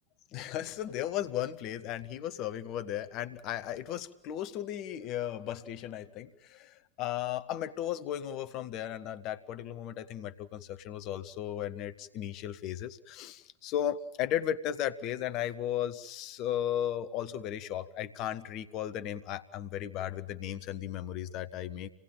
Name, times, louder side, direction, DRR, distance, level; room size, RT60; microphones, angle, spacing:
voice 1, 0.3-21.9, left 11 dB, 40° left, 12 dB, 1.0 m, -35 dB
27.0 x 18.0 x 8.9 m, 0.86 s
figure-of-eight pair, 90°, 0 cm